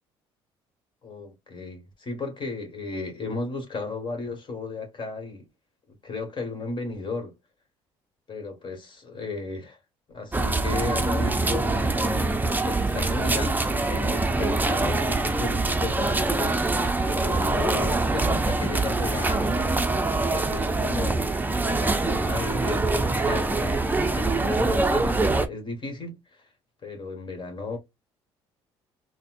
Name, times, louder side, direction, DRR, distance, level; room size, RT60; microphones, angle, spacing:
voice 1, 1.0-5.5 6.0-7.3 8.3-9.8 10.1-16.7 17.0-19.6 20.3-21.2 21.6-23.8 24.1-26.5 26.8-27.8, left 3 dB, 40° left, 1.9 m, -34 dB
sound 1, 10.3-25.5, right 3 dB, 15° right, 0.7 m, -24 dB
4.1 x 2.3 x 2.5 m
hypercardioid pair, 60°, 13 cm